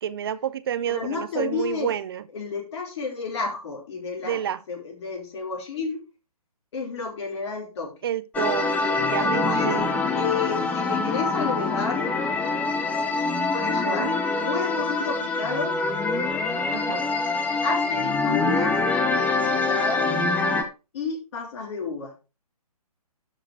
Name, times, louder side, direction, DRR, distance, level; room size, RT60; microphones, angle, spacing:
voice 1, 0.0-2.2 4.2-4.6 8.0-10.0 13.9-14.1 16.7-17.1, right 10 dB, 40° right, 0.7 m, -29 dB
voice 2, 0.9-1.9 2.3-6.0 6.7-7.9 9.2-9.8 10.1-12.1 13.5-15.7 17.6-18.8 19.5-20.1 20.9-22.1, left 4 dB, 45° left, 4.9 m, -31 dB
sound 1, 8.3-20.6, left 3 dB, 5° left, 0.9 m, -25 dB
12.5 x 4.9 x 4.9 m
figure-of-eight pair, 135°, 19 cm